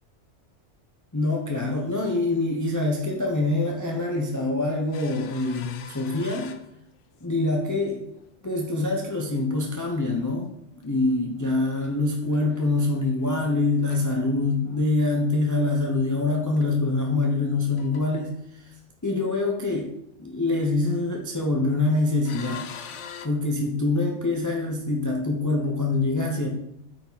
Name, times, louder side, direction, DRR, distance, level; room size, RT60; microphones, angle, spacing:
voice 1, 1.1-6.5 7.2-8.1 8.4-10.5 10.8-18.7 19.0-22.7 23.2-26.5, left 2 dB, 20° left, 0 dB, 0.8 m, -25 dB
sound 1, 4.9-7.4 7.7-8.3 8.7-8.8 10.8-12.0 12.3-13.4 13.8-14.8 15.8-15.9 16.3-16.4 16.6-16.7 17.1-17.5 17.8-18.3 21.0-21.8 22.3-23.3, left 7 dB, 85° left, 1.0 m, -44 dB
8.7 x 4.9 x 4.0 m, 0.79 s
omnidirectional pair, 1.2 m